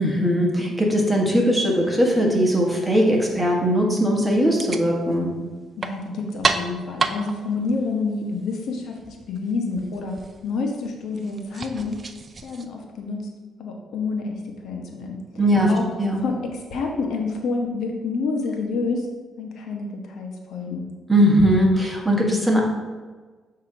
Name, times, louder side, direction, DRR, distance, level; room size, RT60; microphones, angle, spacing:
voice 1, 0.0-5.3 15.4-16.2 21.1-22.6, equal, 5° right, -1 dB, 1.4 m, -19 dB
sound 1, 4.5-12.6, right 4 dB, 35° right, 0.5 m, -32 dB
voice 2, 5.8-10.2 10.4-12.0 12.4-13.2 13.6-14.3 14.6-15.2 15.7-15.8 16.2-19.1 19.4-20.9, left 4 dB, 70° left, 2 dB, 0.9 m, -28 dB
7.5 x 2.9 x 5.0 m, 1.4 s
cardioid pair, 90°, 0 cm